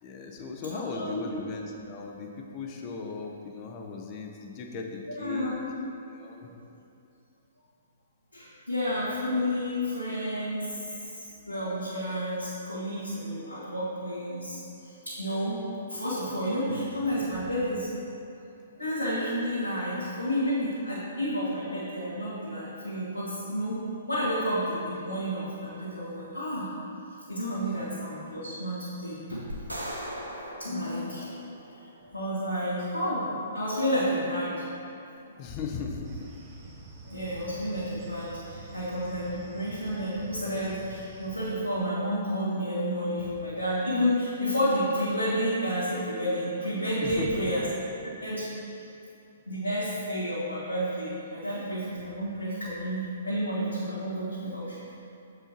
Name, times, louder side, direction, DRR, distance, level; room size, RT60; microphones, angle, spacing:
voice 1, 0.0-5.5 6.1-6.5 10.8-11.0 16.3-16.4 35.4-36.3 47.0-47.5, left 4 dB, 30° left, 2 dB, 0.6 m, -37 dB
voice 2, 0.7-1.3 5.1-5.6 6.4-6.6 8.3-15.6 15.9-17.9 18.8-23.8 24.1-26.7 27.3-29.4 30.2-30.3 30.6-31.3 31.8-33.3 33.5-34.6 37.0-47.6 48.0-48.5 49.4-54.9, equal, 85° left, -12 dB, 1.5 m, -30 dB
sound 1, 29.5-31.9, equal, 85° right, 0.9 m, -39 dB
sound 2, 36.0-41.5, right 2 dB, 30° right, 0.8 m, -47 dB
7.5 x 4.7 x 2.9 m, 2.7 s
figure-of-eight pair, 120°, 0 cm